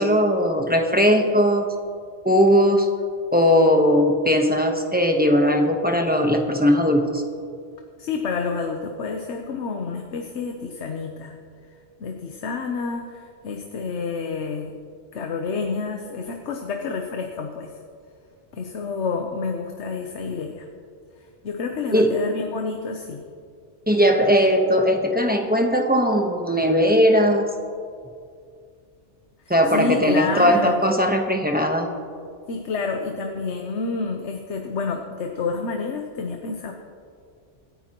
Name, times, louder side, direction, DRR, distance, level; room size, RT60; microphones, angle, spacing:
voice 1, 0.0-1.6 2.2-2.9 3.3-7.2 21.9-22.1 23.9-27.5 29.5-31.9, equal, 10° right, 3 dB, 1.0 m, -19 dB
voice 2, 8.0-11.3 12.0-14.8 15.1-17.7 18.5-20.7 21.4-23.2 29.7-30.8 32.5-36.7, left 4 dB, 75° left, 3 dB, 1.2 m, -29 dB
25.5 x 9.9 x 3.0 m, 2.2 s
omnidirectional pair, 1.2 m